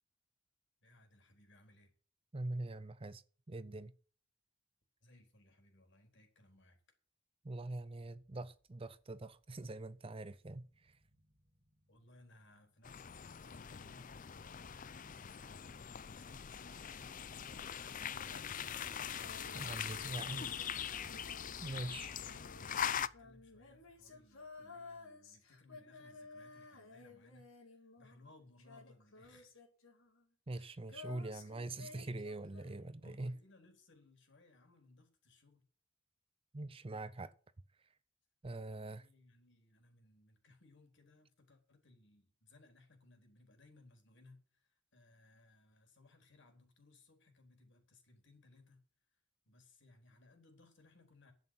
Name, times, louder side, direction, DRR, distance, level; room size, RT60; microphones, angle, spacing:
voice 1, 0.8-1.9 5.0-6.8 11.9-20.0 20.4-29.6 33.0-35.7 38.7-48.8 49.5-51.3, left 2 dB, 60° left, 4.0 m, -64 dB
voice 2, 2.3-3.9 7.4-10.6 19.5-20.7 21.6-22.1 30.5-33.3 36.5-37.3 38.4-39.1, right 2 dB, 25° right, 0.6 m, -43 dB
sound 1, 8.6-9.6 10.0-10.1 10.4-14.8 18.0-25.0, equal, 45° right, 1.4 m, -63 dB
sound 2, 12.8-23.1, left 8 dB, 40° left, 0.5 m, -42 dB
Female singing, 18.0-28.3 28.6-33.0, left 4 dB, 85° left, 4.5 m, -55 dB
11.0 x 8.2 x 7.8 m
head